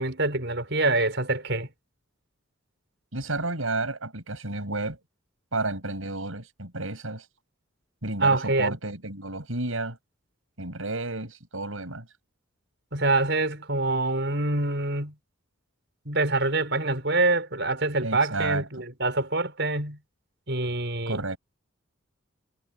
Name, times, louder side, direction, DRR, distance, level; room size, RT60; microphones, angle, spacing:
voice 1, 0.0-1.7 8.2-8.8 12.9-15.1 16.0-20.0 20.5-21.4, right 2 dB, 55° right, 6.4 m, -25 dB
voice 2, 3.1-5.0 5.5-7.3 8.0-10.0 10.6-12.1 18.0-18.7 21.1-21.4, right 2 dB, 90° right, 6.9 m, -31 dB
head